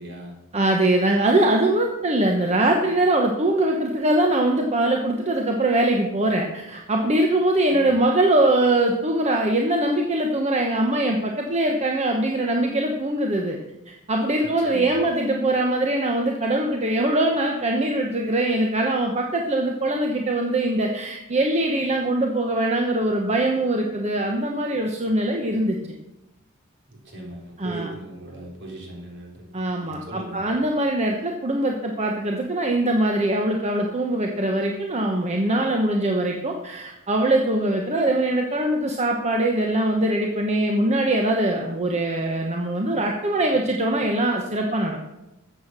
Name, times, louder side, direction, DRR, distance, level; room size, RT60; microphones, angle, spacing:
voice 1, 0.0-0.3 7.7-7.9 14.4-14.9 26.9-30.4, right 1 dB, 55° right, -1 dB, 3.9 m, -39 dB
voice 2, 0.5-13.6 13.9-25.8 27.6-27.9 29.5-45.1, right 1 dB, 30° right, 1 dB, 1.1 m, -22 dB
13.5 x 7.8 x 6.1 m, 0.96 s
head